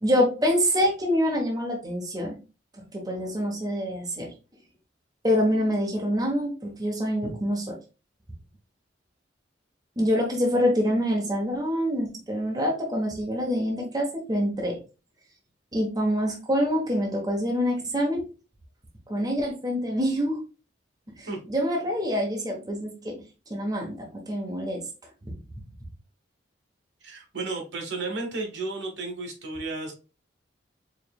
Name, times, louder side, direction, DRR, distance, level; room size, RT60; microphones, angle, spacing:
voice 1, 0.0-2.3 2.8-4.3 5.2-7.6 10.0-14.8 15.7-18.2 19.1-20.4 21.2-23.1 23.5-24.0 24.3-24.8 25.3-25.4, equal, 20° right, -1 dB, 1.0 m, -26 dB
voice 2, 27.0-29.9, right 3 dB, 75° right, 2 dB, 1.3 m, -33 dB
4.8 x 3.2 x 2.3 m, 0.31 s
head